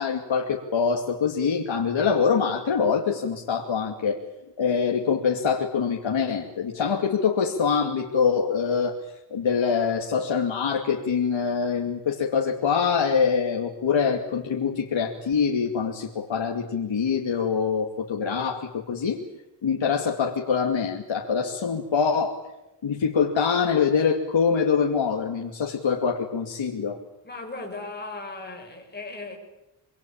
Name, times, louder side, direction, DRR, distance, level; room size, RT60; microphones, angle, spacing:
voice 1, 0.0-4.2 4.6-9.0 9.3-19.2 19.6-22.4 22.8-27.0, left 6 dB, 85° left, 1 dB, 2.6 m, -24 dB
voice 2, 27.2-29.4, left 3 dB, 20° left, 2 dB, 5.8 m, -37 dB
26.0 x 24.5 x 8.8 m, 0.93 s
wide cardioid pair, 165°, 45 cm